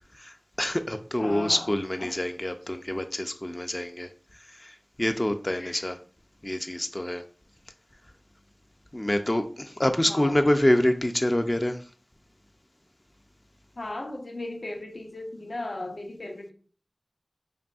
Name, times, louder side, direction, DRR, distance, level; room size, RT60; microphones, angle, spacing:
voice 1, 0.1-6.0 6.4-7.2 8.9-11.9, left 1 dB, 30° left, 0.3 m, -27 dB
voice 2, 1.2-1.7 2.0-2.1 5.6-5.8 10.1-10.3 13.8-16.5, left 2 dB, 75° left, 0.8 m, -36 dB
5.0 x 2.7 x 2.3 m
wide cardioid pair, 55°, 0 cm